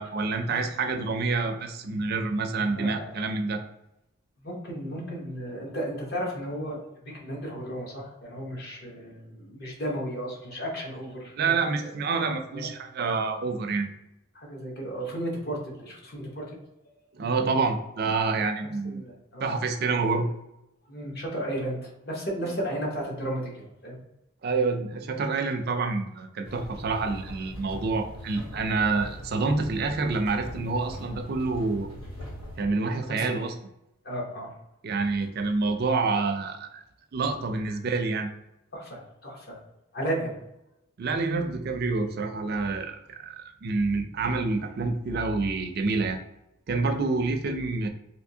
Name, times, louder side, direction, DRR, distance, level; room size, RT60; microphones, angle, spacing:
voice 1, 0.0-3.6 11.4-13.9 17.1-19.1 19.4-20.3 22.4-22.5 24.4-31.9 32.6-33.5 34.8-36.8 37.1-38.3 41.0-46.2 46.7-47.9, right 3 dB, 45° right, 6 dB, 0.4 m, -27 dB
voice 2, 2.7-3.2 4.4-11.9 12.5-12.7 14.3-16.6 18.8-19.5 20.9-24.0 33.1-33.3 34.0-34.6 38.7-39.6 39.9-40.4, right 1 dB, 45° left, -2 dB, 0.9 m, -34 dB
sound 1, 26.4-32.7, equal, 80° left, 0.9 m, -41 dB
3.4 x 2.6 x 2.7 m, 0.87 s
head